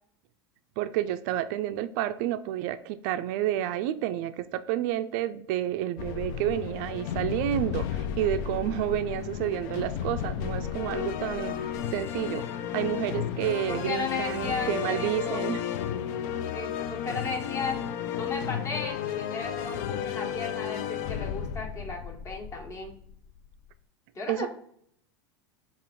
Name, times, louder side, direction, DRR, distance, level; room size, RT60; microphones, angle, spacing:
voice 1, 0.8-12.5 12.7-15.6 24.3-24.5, right 12 dB, 55° right, 0.4 m, -30 dB
sound 1, 6.0-23.6, left 9 dB, 55° left, 0.4 m, -33 dB
voice 2, 13.7-15.4 16.5-17.8 18.1-22.9 24.1-24.5, left 3 dB, 25° left, 1.2 m, -35 dB
5.2 x 2.5 x 3.6 m
supercardioid pair, 120°, 12 cm